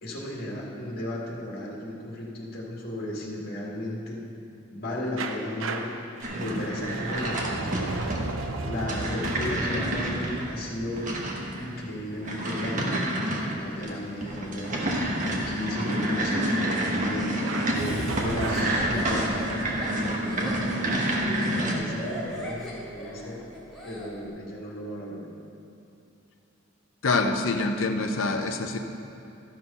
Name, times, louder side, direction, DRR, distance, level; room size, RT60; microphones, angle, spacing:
voice 1, 0.0-4.2 4.7-5.9 6.3-8.0 8.6-11.1 11.6-14.8 15.2-23.4 23.8-25.4, left 1 dB, 50° left, -3 dB, 1.9 m, -35 dB
sound 1, 5.2-11.9 17.4-19.7, right 3 dB, 85° right, 0.7 m, -35 dB
sound 2, 6.2-21.7, right 1 dB, 40° right, 1.2 m, -29 dB
Laughter, 17.7-24.1, equal, ahead, 2.0 m, -39 dB
voice 2, 27.0-28.8, left 3 dB, 75° left, 4 dB, 0.7 m, -25 dB
13.0 x 6.2 x 5.5 m, 2.7 s
head